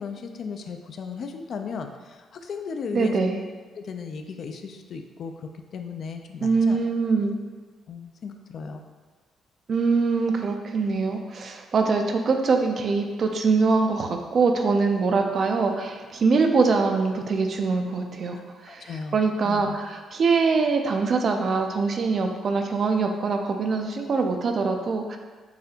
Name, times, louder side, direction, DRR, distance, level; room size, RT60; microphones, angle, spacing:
voice 1, 0.0-3.2 3.8-6.8 7.9-8.8 18.7-19.7, left 5 dB, 60° left, 5 dB, 0.3 m, -36 dB
voice 2, 2.9-3.4 6.4-7.4 9.7-25.2, right 4 dB, 50° right, 4 dB, 0.4 m, -23 dB
4.0 x 2.7 x 2.8 m, 1.4 s
cardioid pair, 90°, 0 cm